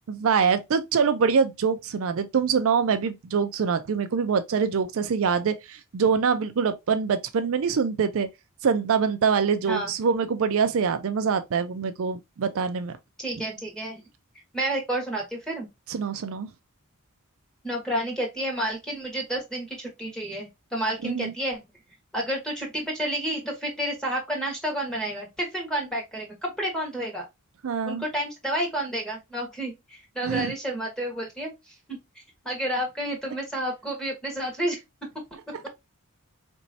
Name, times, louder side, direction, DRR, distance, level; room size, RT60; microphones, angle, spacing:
voice 1, 0.1-8.3 8.6-12.9 15.9-16.5 21.0-21.3 27.6-28.0 30.2-30.5, right 6 dB, 65° right, 0.4 m, -24 dB
voice 2, 13.2-14.0 14.5-15.7 17.6-21.6 22.1-27.3 27.9-32.0 32.4-34.8, right 1 dB, 5° left, 1.5 m, -30 dB
4.3 x 3.0 x 2.6 m
head